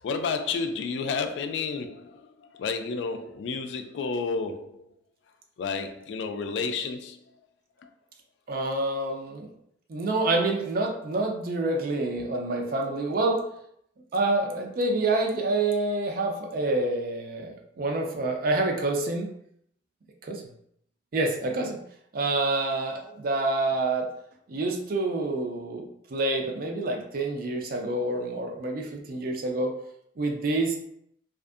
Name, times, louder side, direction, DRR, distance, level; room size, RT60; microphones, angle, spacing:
voice 1, 0.0-4.8 5.6-7.2 7.8-7.9, left 4 dB, 85° left, 0.3 m, -31 dB
voice 2, 8.5-9.5 9.9-13.4 14.1-19.3 20.2-20.4 21.1-21.8 22.1-24.1 24.5-29.7 30.2-30.8, right 2 dB, 55° right, 0.4 m, -27 dB
2.5 x 2.4 x 2.4 m
head